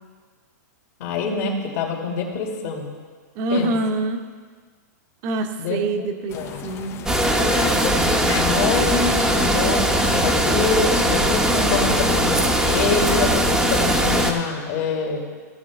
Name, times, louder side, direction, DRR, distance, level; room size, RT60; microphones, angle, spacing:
voice 1, 1.0-2.9 3.5-3.7 5.6-6.1 6.3-6.7 7.4-15.2, left 5 dB, 55° left, 0 dB, 2.4 m, -26 dB
voice 2, 3.4-4.2 5.2-7.0, right 2 dB, 40° right, 5 dB, 1.0 m, -25 dB
sound 1, 6.3-13.4, left 8 dB, 25° left, 0.6 m, -35 dB
sound 2, 7.1-14.3, right 1 dB, 5° right, 0.9 m, -20 dB
16.0 x 6.8 x 3.6 m, 1.5 s
hypercardioid pair, 130°, 10 cm